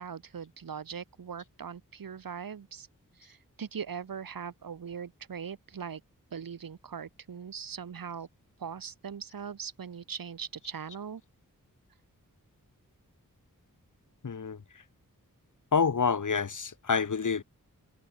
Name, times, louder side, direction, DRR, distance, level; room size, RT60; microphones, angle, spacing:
voice 1, 0.0-2.9 3.2-6.0 6.3-8.3 8.6-11.2, right 7 dB, 75° right, 1.2 m, -40 dB
voice 2, 14.2-14.8 15.7-17.4, left 5 dB, 60° left, 1.4 m, -28 dB
wide cardioid pair, 75°, 34 cm